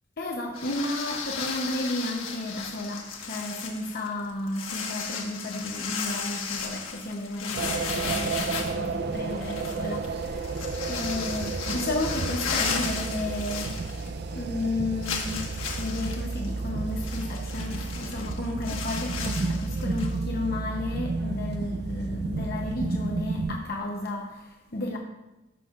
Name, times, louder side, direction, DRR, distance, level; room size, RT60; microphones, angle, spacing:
voice 1, 0.2-13.7 14.3-25.0, left 2 dB, 45° left, 0 dB, 0.8 m, -33 dB
sound 1, 0.5-14.3 14.6-14.7 15.0-20.2, left 5 dB, 85° left, 1.5 m, -35 dB
sound 2, 7.5-23.6, right 3 dB, 50° right, 0.4 m, -32 dB
15.5 x 6.2 x 2.5 m, 1.0 s
head